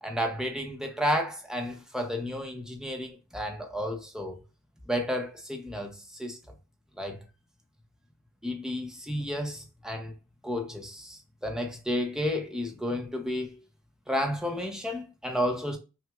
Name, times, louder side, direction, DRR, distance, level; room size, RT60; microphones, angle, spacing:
voice 1, 0.0-4.4 4.9-6.4 7.0-7.2 8.4-10.1 10.4-13.6 14.1-15.8, equal, 5° right, 0.6 m, -32 dB
5.7 x 2.0 x 2.3 m
head